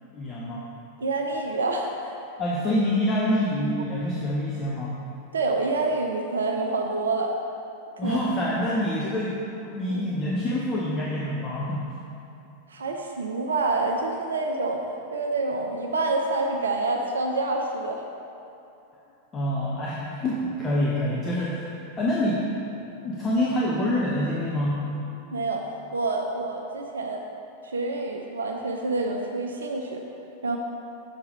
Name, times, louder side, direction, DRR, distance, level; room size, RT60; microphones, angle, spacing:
voice 1, 0.1-0.7 2.4-4.9 8.0-9.4 9.6-11.9 19.3-22.4 22.8-24.9, left 1 dB, 25° left, -5 dB, 0.9 m, -26 dB
voice 2, 1.0-2.1 5.3-7.3 8.0-8.2 9.9-10.1 12.7-18.0 25.3-27.2 27.6-30.0 30.4-30.6, right 3 dB, 70° right, 2 dB, 0.6 m, -27 dB
6.7 x 4.8 x 5.3 m, 2.8 s
figure-of-eight pair, 90°, 0 cm